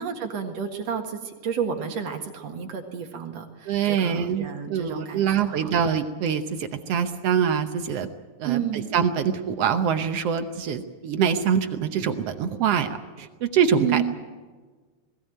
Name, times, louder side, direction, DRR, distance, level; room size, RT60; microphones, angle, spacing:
voice 1, 0.0-5.7 8.4-8.9 13.8-14.0, right 8 dB, 55° right, 4 dB, 2.5 m, -31 dB
voice 2, 3.7-8.1 8.4-14.0, right 7 dB, 80° right, 7 dB, 1.4 m, -24 dB
20.5 x 16.5 x 9.2 m, 1.4 s
omnidirectional pair, 4.1 m